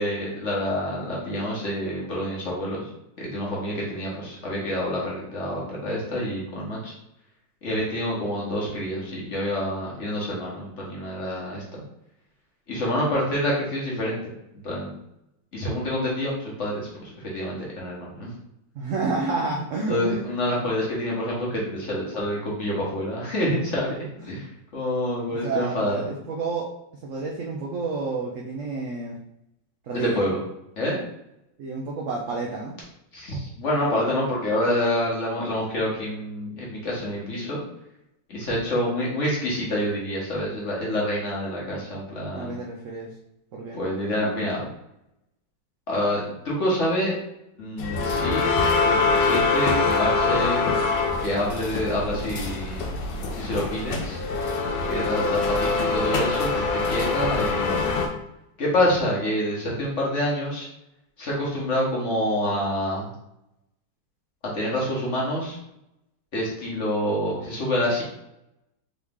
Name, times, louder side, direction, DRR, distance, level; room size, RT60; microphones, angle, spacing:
voice 1, 0.0-2.9 3.2-6.9 7.6-11.8 12.7-14.2 14.6-15.0 15.5-18.3 19.9-23.9 24.2-26.0 29.9-30.4 30.8-31.0 33.1-37.6 38.3-42.5 43.7-44.6 45.9-47.1 47.6-48.6 48.9-50.6 51.2-52.8 53.3-54.2 54.8-57.9 58.6-60.7 61.2-63.1 64.4-65.6 66.3-68.0, left 1 dB, 50° left, -4 dB, 1.2 m, -27 dB
voice 2, 18.7-20.3 24.2-24.3 25.3-26.7 27.0-29.2 29.8-30.4 31.6-32.8 42.3-43.1 43.5-43.8, right 3 dB, 70° right, -1 dB, 0.7 m, -30 dB
sound 1, 47.8-58.1, left 4 dB, 75° left, 1.3 m, -24 dB
3.9 x 3.1 x 3.6 m, 0.83 s
omnidirectional pair, 2.0 m